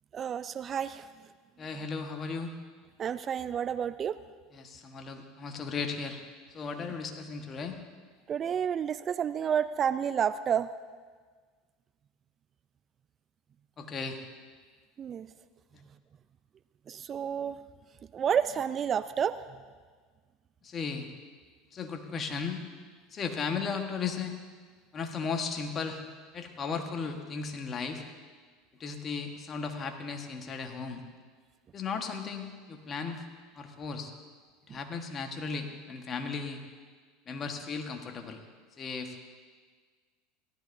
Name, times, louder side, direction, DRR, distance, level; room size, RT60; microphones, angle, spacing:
voice 1, 0.1-1.1 3.0-4.2 8.3-10.7 15.0-15.3 16.9-17.6 18.1-19.4, right 8 dB, 35° right, 14 dB, 0.3 m, -30 dB
voice 2, 1.6-2.5 4.5-6.2 6.5-7.8 13.8-14.2 20.6-21.1 21.7-22.6 23.1-24.3 24.9-26.0 26.3-28.0 28.8-31.0 31.7-33.2 33.5-34.1 34.7-36.6 37.3-38.4 38.8-39.2, left 5 dB, 35° left, 4 dB, 1.4 m, -36 dB
17.0 x 13.0 x 2.7 m, 1.5 s
hypercardioid pair, 90°, 0 cm